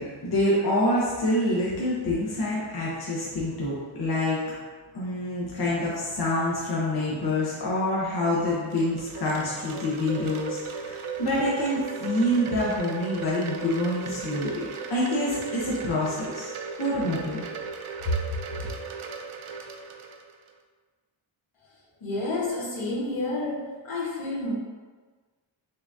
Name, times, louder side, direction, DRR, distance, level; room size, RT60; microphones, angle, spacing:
voice 1, 0.0-4.4 4.9-14.6 14.9-16.5 16.8-17.4 18.1-18.2, left 1 dB, 50° left, -7 dB, 0.8 m, -26 dB
Wind chime, 8.3-20.5, right 5 dB, 85° right, 0.6 m, -37 dB
voice 2, 22.0-24.5, left 2 dB, 75° left, -7 dB, 1.3 m, -30 dB
5.4 x 2.4 x 2.6 m, 1.4 s
wide cardioid pair, 125°, 49 cm